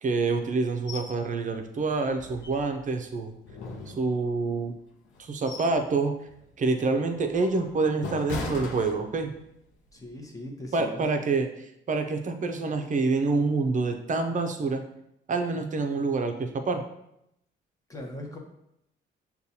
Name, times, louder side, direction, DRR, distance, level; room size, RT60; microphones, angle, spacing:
voice 1, 0.0-3.3 3.9-4.7 5.2-6.1 6.6-9.3 10.7-14.8 15.3-16.8, right 3 dB, 40° right, 6 dB, 0.6 m, -27 dB
sound 1, 0.9-1.2 1.5-1.6 2.1-3.0 3.5-4.5 5.1-5.9 6.2-6.5 7.0-9.5 9.9-10.1, left 3 dB, 80° left, 0.7 m, -39 dB
voice 2, 9.9-11.0 17.9-18.4, left 1 dB, 15° left, 0 dB, 0.9 m, -39 dB
6.6 x 2.3 x 2.8 m, 0.80 s
cardioid pair, 90°, 20 cm